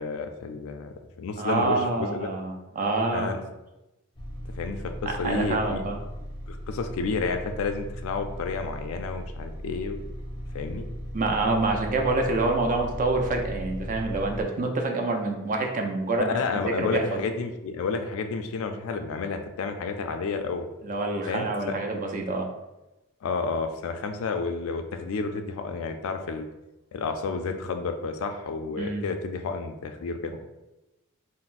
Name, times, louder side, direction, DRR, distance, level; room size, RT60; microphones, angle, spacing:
voice 1, 0.0-2.3 3.1-3.4 4.6-5.8 6.5-10.0 10.5-10.9 16.2-20.7 21.3-21.8 23.2-26.5 26.9-30.3, left 4 dB, 65° left, 6 dB, 0.3 m, -31 dB
voice 2, 1.4-3.3 5.2-6.0 11.1-17.2 20.8-22.5 28.8-29.0, right 2 dB, 40° right, 2 dB, 0.4 m, -27 dB
sound 1, 4.1-14.4, equal, 20° left, 0.6 m, -37 dB
3.9 x 2.0 x 2.4 m, 0.98 s
head